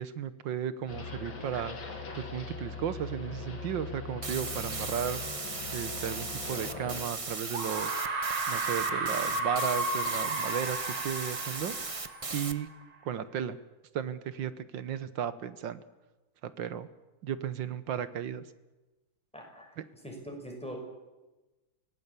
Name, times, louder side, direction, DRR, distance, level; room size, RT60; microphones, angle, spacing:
voice 1, 0.0-5.2 5.7-7.9 8.5-11.7 12.0-12.7 13.1-13.6 13.9-15.8 16.4-16.9 17.2-18.4 19.8-19.9, right 9 dB, 70° right, 14 dB, 1.8 m, -35 dB
sound 1, 0.9-7.0, left 4 dB, 70° left, 3.5 m, -41 dB
sound 2, 4.2-12.5, right 3 dB, 25° right, 0.7 m, -38 dB
sound 3, 6.7-6.8 7.5-12.7, right 2 dB, 85° right, 3.0 m, -33 dB
voice 2, 19.3-19.7 20.0-20.8, equal, 5° left, 1 dB, 5.8 m, -42 dB
25.0 x 18.0 x 8.4 m, 1.1 s
omnidirectional pair, 2.2 m